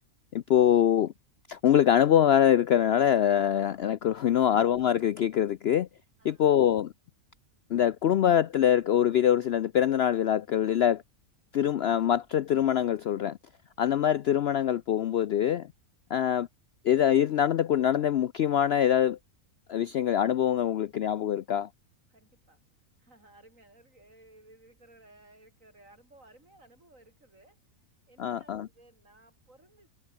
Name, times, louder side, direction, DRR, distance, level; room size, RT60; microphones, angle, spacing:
voice 1, 0.3-1.1 1.5-5.9 6.2-6.9 7.7-11.0 11.5-13.4 13.8-15.7 16.1-16.5 16.8-19.2 19.7-21.7 28.2-28.7, left 10 dB, 65° left, 0.6 m, -24 dB
voice 2, 22.1-22.6 23.0-27.6 28.1-29.9, right 2 dB, 60° right, 7.4 m, -58 dB
omnidirectional pair, 1.5 m